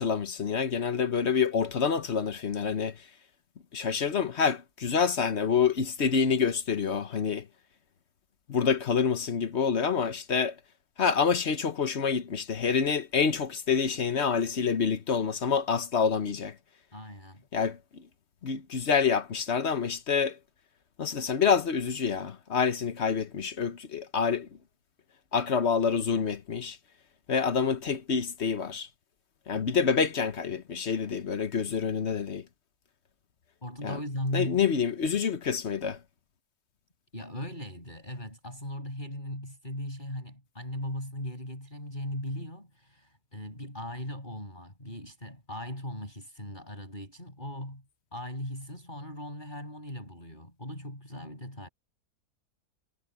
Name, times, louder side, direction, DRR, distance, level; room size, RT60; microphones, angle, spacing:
voice 1, 0.0-3.0 3.7-7.5 8.5-10.5 11.0-16.5 17.5-18.0 18.4-20.4 21.0-24.5 25.3-26.8 27.3-28.9 29.5-32.4 33.8-34.0 34.3-36.0, left 6 dB, 50° left, 1.2 m, -27 dB
voice 2, 16.9-17.4 33.6-34.6 37.1-47.8 48.1-51.7, left 1 dB, 30° left, 7.9 m, -38 dB
omnidirectional pair, 1.6 m